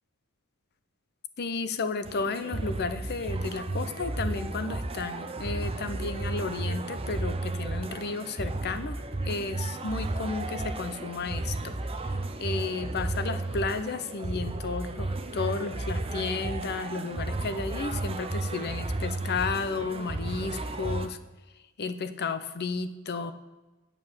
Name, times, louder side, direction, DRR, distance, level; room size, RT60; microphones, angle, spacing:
voice 1, 1.4-21.2 21.8-23.3, left 4 dB, 50° left, 11 dB, 0.6 m, -33 dB
sound 1, 2.1-21.1, right 2 dB, 25° right, 0.6 m, -33 dB
8.4 x 6.7 x 7.3 m, 1.1 s
head